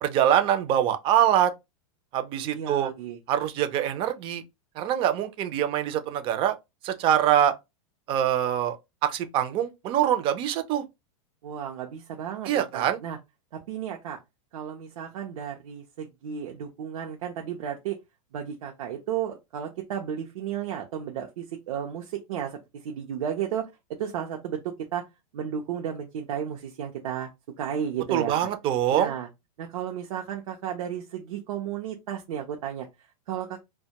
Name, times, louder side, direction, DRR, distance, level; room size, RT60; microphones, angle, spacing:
voice 1, 0.0-1.5 2.1-2.9 3.3-4.4 4.8-6.6 6.8-7.5 8.1-8.8 9.0-10.8 12.5-13.0 28.1-29.1, right 10 dB, 30° right, 0.4 m, -24 dB
voice 2, 2.4-3.2 11.4-13.2 13.7-14.2 14.5-18.0 18.3-23.7 24.0-25.0 25.3-27.3 27.6-28.5 28.9-29.3 29.6-33.6, right 9 dB, 75° right, 0.6 m, -33 dB
2.1 x 2.1 x 2.8 m
supercardioid pair, 145°, 18 cm